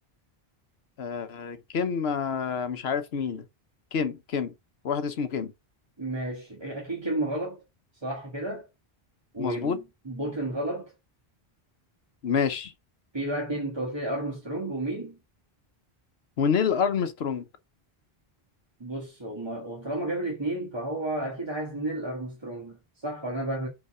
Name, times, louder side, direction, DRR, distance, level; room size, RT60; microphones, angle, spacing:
voice 1, 1.0-3.4 3.9-4.5 4.8-5.5 9.4-9.8 12.2-12.7 16.4-17.4, left 6 dB, 85° left, 1.1 m, -27 dB
voice 2, 6.0-7.6 8.0-8.7 9.3-10.9 13.1-15.2 18.8-23.7, right 1 dB, 25° right, 1.6 m, -32 dB
5.4 x 4.6 x 4.8 m
omnidirectional pair, 1.0 m